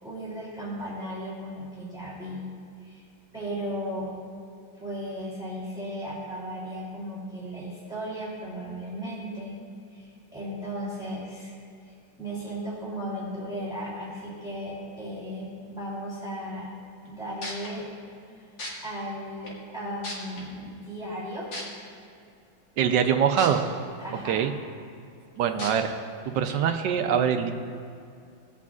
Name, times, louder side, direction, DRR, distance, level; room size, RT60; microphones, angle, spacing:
voice 1, 0.0-2.5 2.8-3.0 3.3-4.1 4.8-9.6 9.9-11.5 12.2-16.7 17.0-17.9 18.4-18.5 18.8-21.5 24.0-24.4, equal, ahead, -8 dB, 2.6 m, -36 dB
sound 1, 17.1-17.2 17.4-17.7 18.6-18.7 19.5-19.6 20.0-20.4 21.5-21.6 23.4-23.5 24.0-24.1 25.6-25.7 26.5-26.6, left 2 dB, 65° left, 2.4 m, -35 dB
voice 2, 22.8-23.6 24.3-24.5 25.4-25.9 26.3-27.5, right 8 dB, 75° right, 6 dB, 1.1 m, -23 dB
19.0 x 8.4 x 2.4 m, 2.5 s
omnidirectional pair, 2.2 m